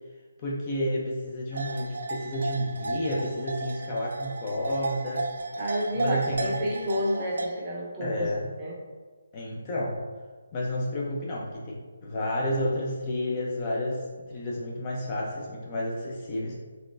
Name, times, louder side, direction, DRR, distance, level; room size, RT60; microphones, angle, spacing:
voice 1, 0.4-5.3 6.0-6.5 8.0-8.5 9.3-10.0 10.5-16.5, left 1 dB, 25° left, -4 dB, 0.5 m, -31 dB
sound 1, 1.5-7.5, right 2 dB, 65° right, 0.4 m, -34 dB
voice 2, 5.6-8.3 8.6-8.7, equal, 15° right, -5 dB, 0.7 m, -30 dB
4.1 x 3.1 x 2.5 m, 1.4 s
hypercardioid pair, 165°, 0 cm